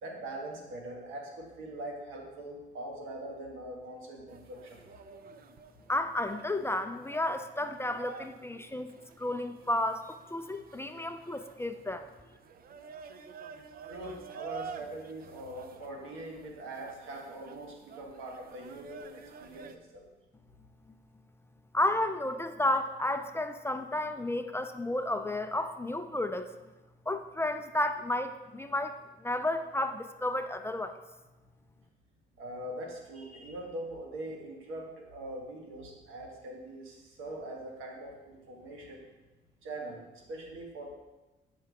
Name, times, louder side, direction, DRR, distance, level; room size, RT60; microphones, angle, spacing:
voice 1, 0.0-4.8 13.8-20.1 32.4-39.1 39.6-40.9, right 1 dB, 90° right, 0 dB, 1.4 m, -42 dB
sound 1, 4.3-19.8, right 6 dB, 50° right, 0.5 m, -49 dB
voice 2, 5.9-8.9 9.2-12.1 21.7-26.5 27.1-28.9 29.2-31.0, left 1 dB, 10° left, 8 dB, 0.3 m, -32 dB
7.6 x 4.7 x 3.5 m, 1.1 s
cardioid pair, 90°, 20 cm